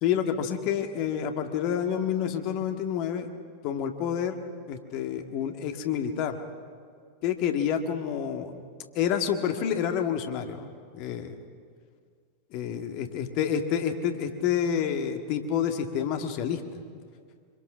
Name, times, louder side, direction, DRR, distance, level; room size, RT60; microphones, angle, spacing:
voice 1, 0.0-3.3 3.6-4.4 4.7-6.4 7.2-8.6 9.0-11.3 12.5-16.8, left 8 dB, 45° left, 6 dB, 1.9 m, -28 dB
25.0 x 25.0 x 6.2 m, 2.1 s
figure-of-eight pair, 90°, 0 cm